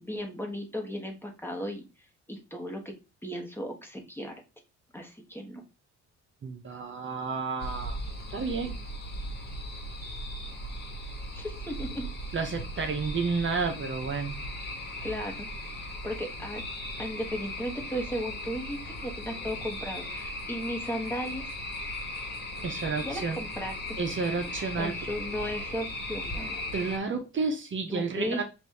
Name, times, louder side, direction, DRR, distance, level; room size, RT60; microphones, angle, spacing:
voice 1, 0.0-1.9 2.3-2.9 3.2-4.4 4.9-5.6 11.3-12.1 15.0-15.5 15.8-16.6 17.0-21.5 23.0-24.0 24.5-26.6 27.9-28.4, equal, 5° left, 2 dB, 1.2 m, -36 dB
voice 2, 6.4-8.0 8.3-8.8 12.3-14.4 22.6-23.4 24.0-24.9 26.7-28.4, right 4 dB, 40° right, 4 dB, 0.8 m, -31 dB
sound 1, 7.6-27.0, left 1 dB, 35° left, 1.4 m, -37 dB
5.0 x 2.6 x 3.4 m, 0.28 s
cardioid pair, 90°, 30 cm